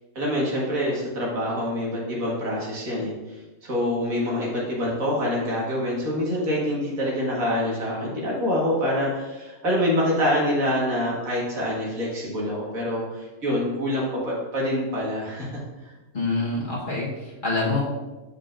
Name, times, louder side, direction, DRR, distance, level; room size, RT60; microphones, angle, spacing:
voice 1, 0.2-3.1 3.6-15.5 15.8-15.9, left 1 dB, 70° right, -5 dB, 2.2 m, -26 dB
voice 2, 16.1-17.8, left 3 dB, 35° left, -6 dB, 1.4 m, -26 dB
7.6 x 5.3 x 2.5 m, 1.1 s
omnidirectional pair, 1.5 m